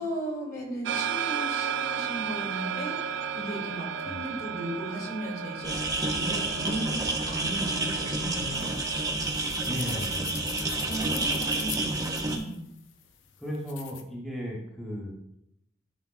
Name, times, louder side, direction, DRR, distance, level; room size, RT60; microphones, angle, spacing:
voice 1, 0.0-8.7 10.9-12.6, right 1 dB, 50° left, 0 dB, 1.9 m, -36 dB
sound 1, 0.8-9.1, right 7 dB, 70° right, 0.4 m, -34 dB
sound 2, 5.6-12.4, right 2 dB, 20° right, 0.7 m, -29 dB
sound 3, 8.5-14.0, left 9 dB, 85° left, 0.6 m, -43 dB
voice 2, 9.6-11.1 13.4-15.1, equal, ahead, -4 dB, 1.0 m, -36 dB
10.5 x 5.1 x 2.4 m, 0.77 s
head